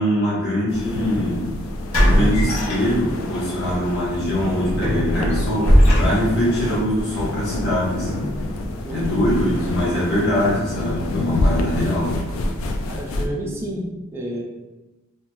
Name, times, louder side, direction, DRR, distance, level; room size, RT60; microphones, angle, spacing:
voice 1, 0.0-1.5 2.0-8.3 8.9-12.2, equal, 55° left, -8 dB, 0.8 m, -23 dB
sound 1, 0.7-13.3, left 2 dB, 70° left, 0.3 m, -28 dB
sound 2, 1.9-3.4 3.8-4.0 4.4-6.5, equal, 90° left, 0.9 m, -19 dB
Drum, 2.1-5.0, equal, 15° left, 0.7 m, -35 dB
voice 2, 12.9-14.4, right 1 dB, 10° right, -3 dB, 0.3 m, -30 dB
2.6 x 2.1 x 3.0 m, 1.1 s
head